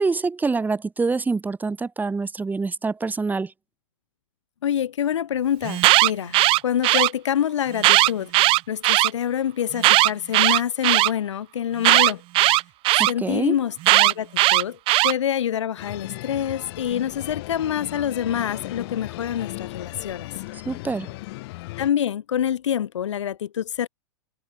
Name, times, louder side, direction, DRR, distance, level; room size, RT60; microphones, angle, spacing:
voice 1, 0.0-3.5 13.0-13.6 20.7-21.1, right 4 dB, 10° right, 3.9 m, -25 dB
voice 2, 4.6-6.3 6.6-8.3 8.7-12.2 13.1-14.8 15.0-20.3 21.8-23.9, left 9 dB, 80° left, 3.4 m, -26 dB
Alarm, 5.6-7.1 7.8-9.1 9.8-11.1 11.8-13.1 13.8-15.1, right 20 dB, 35° right, 0.6 m, -17 dB
sound 1, 15.8-21.9, left 22 dB, 60° left, 6.0 m, -36 dB
hypercardioid pair, 115°, 15 cm